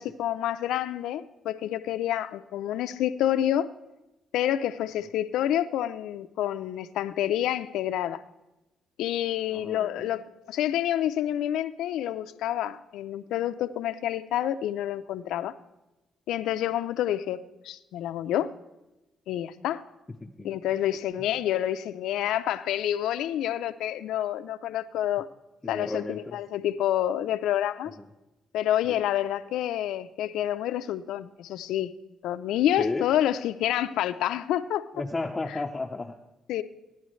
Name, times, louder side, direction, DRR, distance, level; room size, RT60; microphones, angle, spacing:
voice 1, 0.0-3.7 4.3-8.2 9.0-15.6 16.3-18.5 19.3-19.8 20.4-25.3 25.7-27.9 28.5-31.9 32.2-34.9 36.5-36.6, left 12 dB, 85° left, 12 dB, 0.5 m, -28 dB
voice 2, 9.5-10.1 20.1-20.5 25.6-26.4 28.0-28.1 28.8-29.0 32.8-33.1 34.9-36.2, left 3 dB, 20° left, 3 dB, 0.7 m, -33 dB
16.5 x 11.0 x 3.2 m, 0.99 s
cardioid pair, 90°, 0 cm